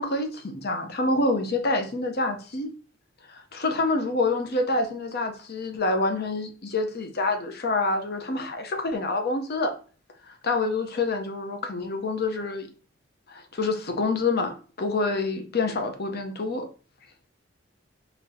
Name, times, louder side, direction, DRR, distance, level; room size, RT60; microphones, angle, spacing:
voice 1, 0.0-2.7 3.3-9.7 10.3-12.7 13.3-14.5 14.8-16.7, left 2 dB, 55° left, 0.8 m, -27 dB
4.3 x 3.3 x 2.8 m
head